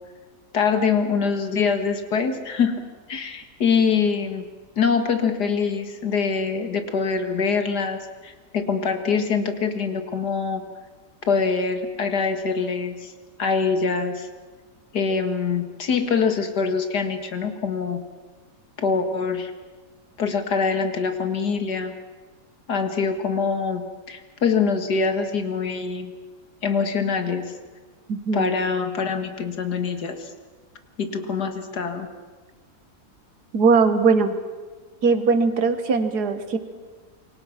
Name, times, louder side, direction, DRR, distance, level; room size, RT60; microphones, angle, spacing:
voice 1, 0.5-2.7 3.1-4.5 4.8-10.6 11.2-13.1 13.4-14.3 14.9-18.0 18.8-19.5 20.2-21.9 22.7-23.8 24.1-26.1 26.6-27.5 28.3-30.3 31.0-32.1, left 5 dB, 85° left, 7 dB, 2.4 m, -24 dB
voice 2, 28.1-28.5 33.5-34.4 35.0-36.6, right 4 dB, 75° right, 9 dB, 2.0 m, -20 dB
27.0 x 23.5 x 5.9 m, 1.4 s
omnidirectional pair, 1.7 m